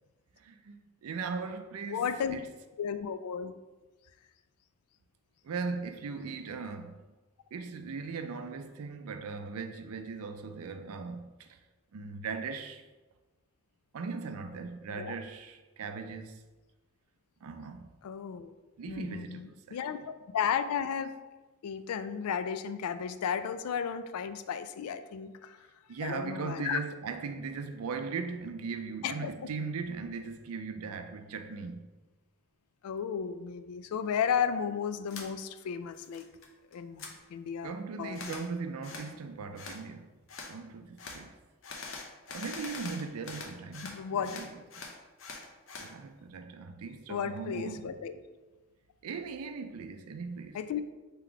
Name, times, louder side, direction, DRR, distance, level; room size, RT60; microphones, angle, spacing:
voice 1, 0.4-2.5 5.4-7.0 7.5-11.6 11.9-12.8 13.9-16.4 17.4-17.9 18.8-19.8 25.9-31.8 37.6-40.1 40.5-41.3 42.3-44.5 44.8-44.9 45.8-48.0 49.0-50.6, right 4 dB, 80° right, 0.4 m, -39 dB
voice 2, 1.9-2.4 2.8-3.5 14.9-15.1 18.0-18.5 18.9-21.1 21.6-25.7 26.0-26.8 29.0-29.3 32.8-36.2 36.7-38.5 43.8-44.4 47.1-48.2 50.5-50.8, left 7 dB, 85° left, 0.3 m, -34 dB
sound 1, 35.1-35.3 35.7-36.5 36.7-37.1 38.1-38.5 38.8-39.1 39.6-39.8 40.3-40.5 41.0-41.2 41.6-44.0 44.2-45.9, left 4 dB, 60° left, 0.7 m, -43 dB
3.8 x 2.9 x 4.7 m
head